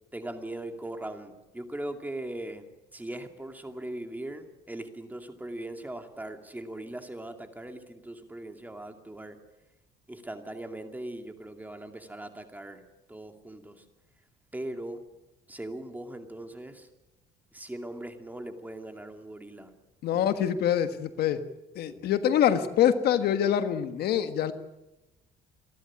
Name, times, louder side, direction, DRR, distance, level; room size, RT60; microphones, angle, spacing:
voice 1, 0.1-2.6 2.9-9.4 10.1-12.8 13.1-13.8 14.5-15.0 15.5-16.9 17.5-19.7, right 1 dB, 10° right, 5 dB, 2.4 m, -39 dB
voice 2, 20.0-21.4 21.7-24.5, left 9 dB, 70° left, 9 dB, 1.4 m, -25 dB
27.5 x 11.5 x 9.7 m, 1.0 s
cardioid pair, 110°, 17 cm